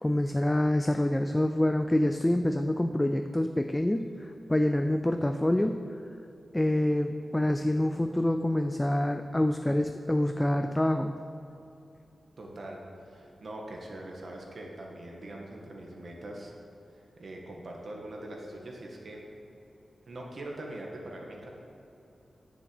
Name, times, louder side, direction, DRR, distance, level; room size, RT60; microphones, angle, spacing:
voice 1, 0.0-4.1 4.5-5.8 6.5-11.2, left 1 dB, 10° left, 6 dB, 0.3 m, -26 dB
voice 2, 12.4-16.6 16.9-19.2 20.1-21.5, right 1 dB, 50° right, 0 dB, 1.7 m, -42 dB
10.0 x 7.0 x 7.7 m, 2.8 s
wide cardioid pair, 170°, 0 cm